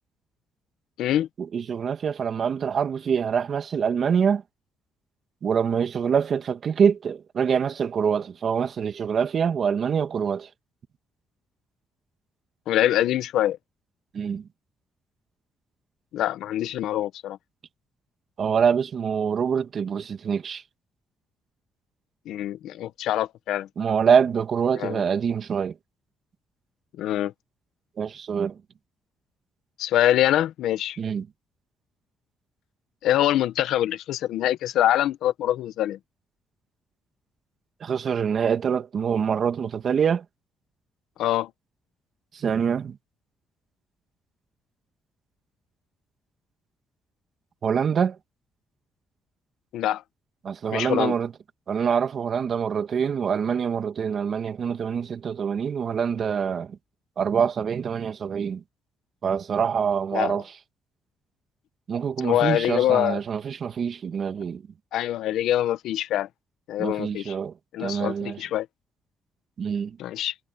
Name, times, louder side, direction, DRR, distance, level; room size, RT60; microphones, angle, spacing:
voice 1, 1.4-4.4 5.4-10.5 14.1-14.5 18.4-20.6 23.8-25.8 28.0-28.6 31.0-31.3 37.8-40.2 42.3-43.0 47.6-48.2 50.4-51.3 51.7-56.8 57.2-58.6 59.2-60.5 61.9-64.6 66.8-67.5 67.8-68.4 69.6-70.0, right 7 dB, 55° right, 2.2 m, -25 dB
voice 2, 12.7-13.6 16.1-17.4 22.3-23.7 24.8-25.0 27.0-27.3 29.8-31.0 33.0-36.0 41.2-41.5 49.7-50.0 50.7-51.2 60.1-60.4 62.2-63.2 64.9-66.3 66.7-67.3 67.7-68.7 70.0-70.3, left 12 dB, 85° left, 1.2 m, -24 dB
cardioid pair, 90°, 0 cm